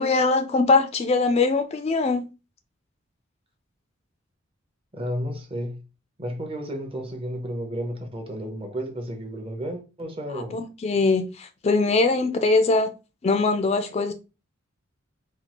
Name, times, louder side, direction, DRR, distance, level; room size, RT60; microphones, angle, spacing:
voice 1, 0.0-2.3 10.3-12.9 13.2-14.1, left 3 dB, 30° left, 0.3 m, -22 dB
voice 2, 4.9-5.9 6.2-10.6, equal, 30° right, 0.7 m, -32 dB
4.3 x 2.3 x 2.9 m
head